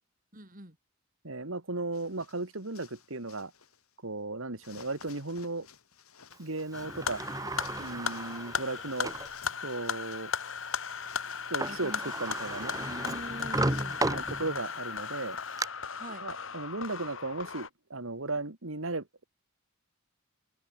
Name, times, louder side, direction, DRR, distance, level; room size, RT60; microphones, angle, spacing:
voice 1, 0.3-0.8 11.7-12.1 12.8-14.1 16.0-16.2, right 1 dB, 40° right, 6.5 m, -43 dB
voice 2, 1.2-3.5 4.0-5.7 6.4-7.2 7.8-9.1 9.6-10.3 11.5-11.9 12.2-12.8 14.1-15.4 16.2-19.3, right 2 dB, 70° right, 2.1 m, -36 dB
sound 1, 1.9-4.0 4.6-13.8, left 7 dB, 90° left, 4.3 m, -56 dB
sound 2, 6.7-17.7, left 6 dB, 65° left, 1.9 m, -37 dB
Sliding door, 6.7-9.3 9.9-10.0 11.3-11.4 11.6-14.8 15.2-15.7, right 2 dB, 15° right, 1.4 m, -34 dB
head